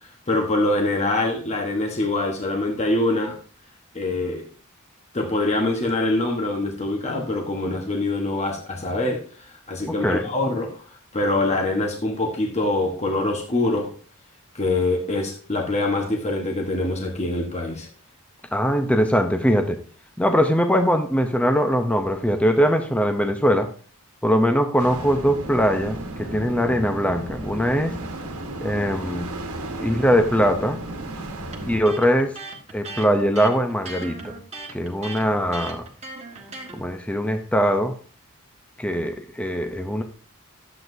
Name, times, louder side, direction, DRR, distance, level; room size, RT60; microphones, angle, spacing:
voice 1, 0.3-3.4 3.9-4.4 5.1-10.8 11.1-13.9 14.5-17.9, left 2 dB, 30° left, 1 dB, 1.1 m, -24 dB
voice 2, 9.9-10.2 18.5-19.8 20.2-23.7 24.2-28.0 28.6-29.3 29.8-30.8 31.6-32.3 32.7-34.4 34.7-35.9 36.7-37.9 38.8-40.0, equal, 5° left, 6 dB, 0.6 m, -21 dB
sound 1, 24.8-31.8, right 1 dB, 75° right, 1.3 m, -34 dB
Electric guitar, 31.5-36.8, right 2 dB, 30° right, 1.4 m, -37 dB
11.5 x 7.8 x 2.6 m, 0.40 s
head